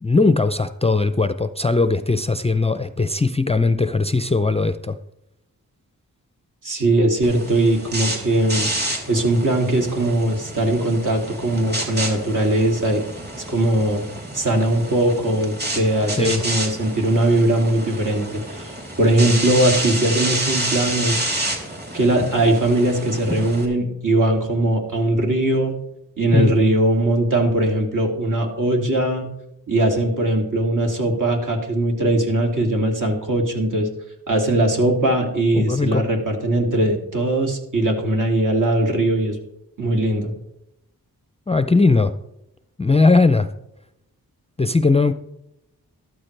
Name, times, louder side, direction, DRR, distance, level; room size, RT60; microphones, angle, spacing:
voice 1, 0.0-5.0 16.1-16.4 26.3-26.5 35.5-36.0 41.5-42.1 42.8-43.5 44.6-45.1, left 3 dB, 15° left, 11 dB, 0.5 m, -19 dB
voice 2, 6.6-8.7 9.1-13.0 13.5-14.0 14.3-18.7 19.0-21.2 21.9-25.7 26.2-29.3 29.7-33.9 34.3-39.4 39.8-40.3, right 1 dB, 55° right, 1 dB, 2.6 m, -20 dB
sound 1, 7.2-23.7, right 1 dB, 25° right, 3.1 m, -29 dB
13.0 x 12.5 x 3.3 m, 0.84 s
cardioid pair, 60°, 37 cm